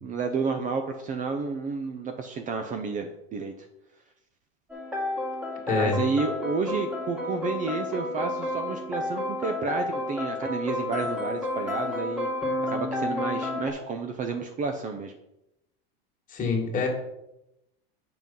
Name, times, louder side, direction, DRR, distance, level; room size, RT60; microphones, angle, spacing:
voice 1, 0.0-3.7 5.7-12.3 12.6-15.1, right 4 dB, 25° right, 6 dB, 0.7 m, -31 dB
sound 1, 4.7-13.7, left 2 dB, 5° right, 2.0 m, -31 dB
voice 2, 5.7-6.0 16.3-16.9, left 4 dB, 25° left, 0 dB, 2.2 m, -25 dB
7.3 x 5.7 x 5.4 m, 0.88 s
supercardioid pair, 135°, 31 cm